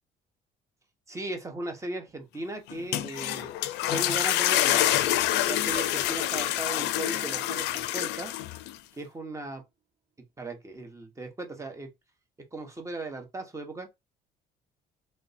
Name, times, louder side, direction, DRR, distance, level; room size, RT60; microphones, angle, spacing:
voice 1, 1.1-3.5 3.9-4.9 5.3-8.3 8.9-9.6 10.4-11.9 12.5-13.9, right 2 dB, 15° right, 1.1 m, -37 dB
sound 1, 2.7-8.7, left 14 dB, 90° left, 0.4 m, -27 dB
sound 2, 3.7-8.6, right 8 dB, 50° right, 0.6 m, -47 dB
3.2 x 2.5 x 4.0 m
cardioid pair, 110°, 17 cm